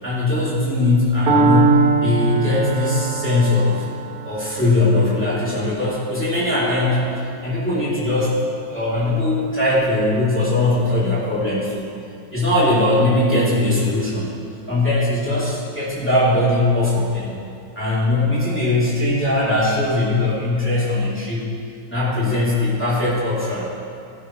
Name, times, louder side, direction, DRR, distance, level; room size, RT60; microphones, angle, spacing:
voice 1, 0.0-3.9 4.2-7.0 7.4-8.4 8.7-11.8 12.3-14.4 14.7-17.4 17.7-21.5 21.9-23.7, left 2 dB, 5° left, -9 dB, 3.0 m, -20 dB
Piano, 1.3-9.2, right 5 dB, 55° right, 1.7 m, -24 dB
17.0 x 9.3 x 3.2 m, 2.5 s
omnidirectional pair, 2.0 m